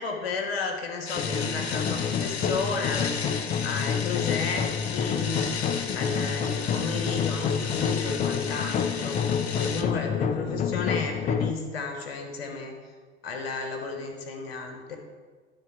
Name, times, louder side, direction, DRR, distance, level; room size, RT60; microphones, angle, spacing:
voice 1, 0.0-3.3 3.6-5.5 5.9-9.2 9.6-12.8 13.2-15.0, left 4 dB, 70° left, 3 dB, 1.4 m, -33 dB
sound 1, 1.1-9.8, left 6 dB, 85° left, 0.6 m, -35 dB
sound 2, 1.1-11.5, left 7 dB, 25° left, 0.4 m, -28 dB
11.5 x 4.1 x 4.6 m, 1.5 s
figure-of-eight pair, 75°, 31 cm